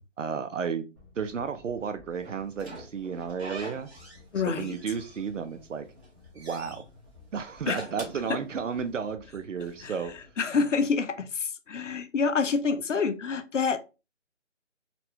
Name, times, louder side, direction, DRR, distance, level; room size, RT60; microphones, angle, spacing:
voice 1, 0.2-0.9 1.2-3.9 4.4-5.9 6.3-6.8 7.3-10.1, right 6 dB, 80° right, 0.6 m, -33 dB
sound 1, 0.9-10.3, left 3 dB, 15° right, 0.6 m, -55 dB
Slam / Squeak, 2.2-4.3 4.6-5.5 5.9-6.8 7.5-9.0, right 2 dB, 55° right, 1.5 m, -44 dB
voice 2, 4.3-4.8 7.7-7.8 9.8-9.9 10.4-13.8, left 5 dB, 75° left, 0.6 m, -27 dB
4.1 x 2.2 x 2.7 m
figure-of-eight pair, 155°, 37 cm